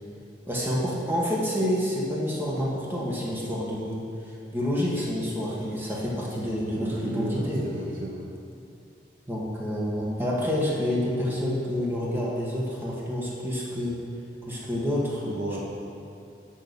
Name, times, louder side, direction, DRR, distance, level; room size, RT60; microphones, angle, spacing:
voice 1, 0.5-4.0 4.5-7.6 9.3-14.0 14.4-15.3, equal, 10° right, -5 dB, 1.2 m, -28 dB
voice 2, 6.8-8.3 15.2-15.6, right 2 dB, 45° right, -2 dB, 0.7 m, -34 dB
7.4 x 6.4 x 6.8 m, 2.6 s
head